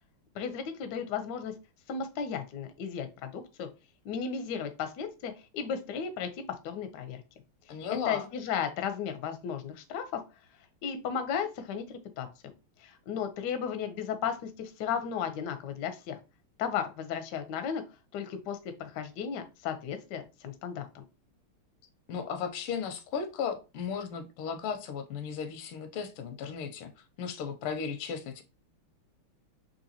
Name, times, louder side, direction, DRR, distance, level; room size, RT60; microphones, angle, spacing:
voice 1, 0.3-1.5 1.9-3.7 4.0-7.2 7.9-10.2 10.8-12.3 12.8-16.2 16.6-17.8 18.1-21.0, left 7 dB, 70° left, 8 dB, 1.0 m, -35 dB
voice 2, 7.7-8.3 22.1-28.4, left 6 dB, 90° left, 8 dB, 1.5 m, -35 dB
3.9 x 2.7 x 2.7 m, 0.29 s
omnidirectional pair, 2.4 m